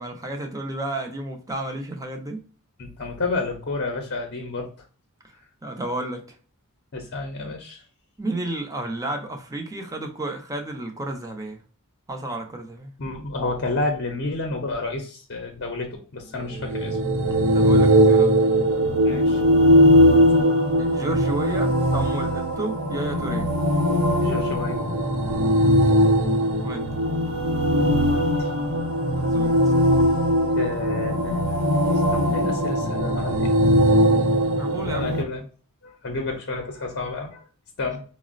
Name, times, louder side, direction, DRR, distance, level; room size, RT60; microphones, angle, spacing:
voice 1, 0.0-2.4 5.6-6.3 8.2-11.6 12.1-12.9 17.5-18.4 20.8-23.5 26.6-27.0 29.1-29.8 34.6-35.2, right 2 dB, 15° right, 0.6 m, -32 dB
voice 2, 2.8-4.7 6.9-7.8 13.0-17.0 19.0-19.4 24.2-24.8 28.0-28.5 30.6-31.6 32.1-33.5 34.0-34.1 34.8-35.4 35.8-37.4 37.8-38.0, left 3 dB, 50° left, 0.6 m, -30 dB
sound 1, 16.4-35.2, equal, 65° right, 0.7 m, -20 dB
4.7 x 2.0 x 2.4 m
head